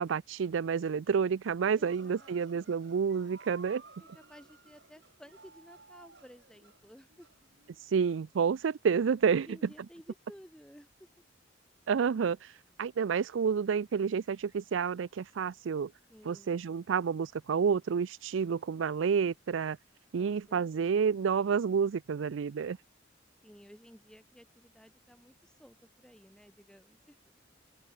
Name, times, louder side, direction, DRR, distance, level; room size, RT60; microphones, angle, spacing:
voice 1, 0.0-3.8 7.9-9.5 11.9-12.5 12.8-15.9 16.3-19.8 20.1-22.8, right 6 dB, 85° right, 0.4 m, -29 dB
voice 2, 1.8-2.7 4.0-7.3 9.3-11.1 16.1-16.6 20.2-21.3 23.4-27.3, equal, 5° left, 5.0 m, -55 dB
sound 1, 1.9-8.1, right 3 dB, 65° right, 5.2 m, -56 dB
open air
head